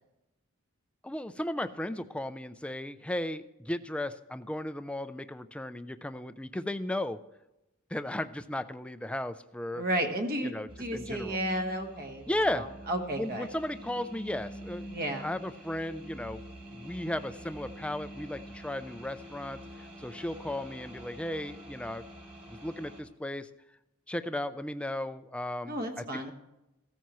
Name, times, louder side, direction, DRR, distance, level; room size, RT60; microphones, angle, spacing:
voice 1, 1.0-7.2 7.9-9.8 10.4-11.4 12.3-12.7 13.1-16.4 16.7-22.1 22.5-23.5 24.1-26.3, left 1 dB, 5° left, 10 dB, 0.4 m, -35 dB
voice 2, 9.7-13.5 14.9-15.3 25.7-26.3, right 1 dB, 45° right, 5 dB, 1.4 m, -33 dB
didge sample efex, 10.7-23.0, right 1 dB, 25° right, 2.4 m, -46 dB
15.5 x 14.0 x 3.1 m, 0.94 s
head